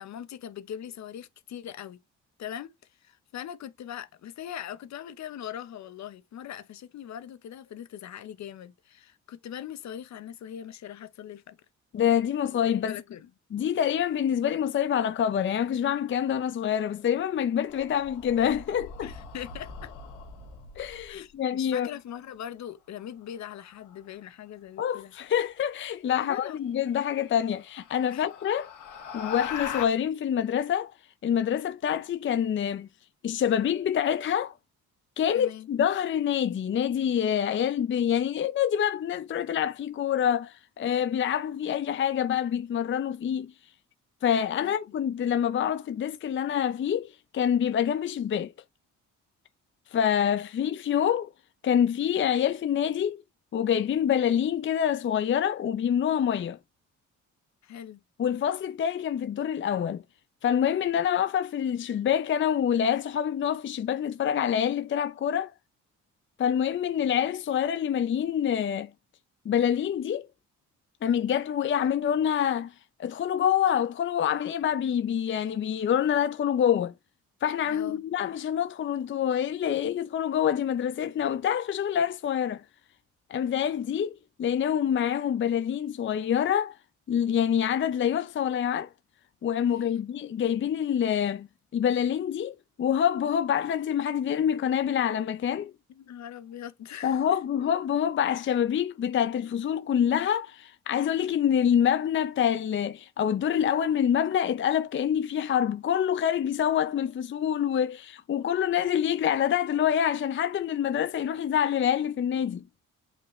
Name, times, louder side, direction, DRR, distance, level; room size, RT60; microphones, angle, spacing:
voice 1, 0.0-2.0 2.4-2.7 3.0-11.6 12.9-13.3 19.0-19.9 21.1-25.1 26.2-26.6 28.1-28.2 35.3-35.7 44.6-44.9 57.6-58.0 77.7-78.0 89.7-90.0 95.9-97.4, left 10 dB, 65° left, 0.9 m, -41 dB
voice 2, 11.9-12.9 13.5-19.1 20.8-21.9 24.8-28.7 29.1-30.9 31.2-32.9 33.2-34.5 35.2-43.5 44.2-48.5 49.9-51.3 51.6-53.2 53.5-56.6 58.2-60.0 60.4-65.5 66.4-68.9 69.5-70.3 71.0-72.7 73.0-76.9 77.4-82.6 83.3-86.8 87.1-88.9 89.4-91.5 91.7-95.7 97.0-112.6, left 9 dB, 40° left, 0.6 m, -26 dB
sound 1, 17.7-21.2 23.5-24.0 26.0-26.1 26.6-26.7 27.2-29.8, left 7 dB, 90° left, 2.1 m, -40 dB
8.1 x 4.1 x 3.1 m
cardioid pair, 90°, 30 cm